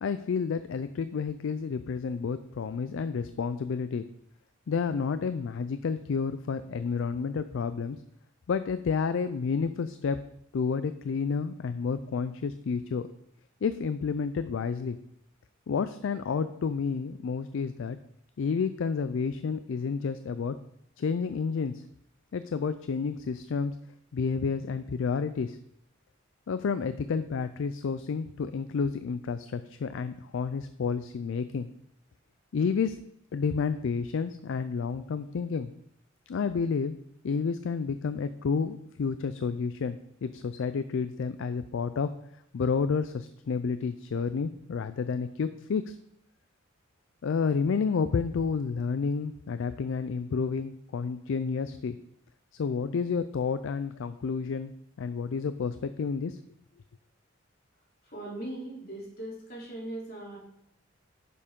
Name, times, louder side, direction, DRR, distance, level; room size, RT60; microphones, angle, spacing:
voice 1, 0.0-4.0 4.7-8.0 8.5-10.2 10.5-13.1 13.6-15.0 15.7-18.0 18.4-20.5 21.0-21.8 22.3-23.7 24.1-25.6 26.5-31.7 32.5-33.0 33.3-35.7 36.3-36.9 37.2-42.1 42.5-46.0 47.2-52.0 52.5-54.7 55.0-56.4, left 5 dB, 65° left, 12 dB, 0.4 m, -30 dB
voice 2, 58.0-60.4, right 1 dB, 50° left, -3 dB, 3.1 m, -39 dB
9.6 x 6.9 x 3.7 m, 0.74 s
head